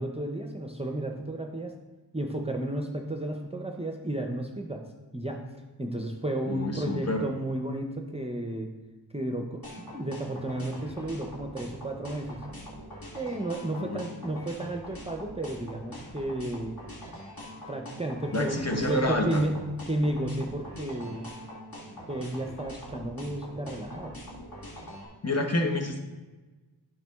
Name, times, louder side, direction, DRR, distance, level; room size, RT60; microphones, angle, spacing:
voice 1, 0.0-1.7 2.1-4.8 5.1-5.4 5.8-8.7 9.1-12.4 13.1-16.7 17.7-19.6 19.9-21.3 22.1-24.2, right 1 dB, 15° right, 2 dB, 0.5 m, -32 dB
voice 2, 6.5-7.2 13.8-14.0 18.3-19.4 25.2-26.0, left 1 dB, 40° left, 3 dB, 0.9 m, -28 dB
sound 1, 9.6-25.1, equal, 60° left, 2.0 m, -43 dB
9.1 x 6.0 x 2.3 m, 1.2 s
wide cardioid pair, 50°, 41 cm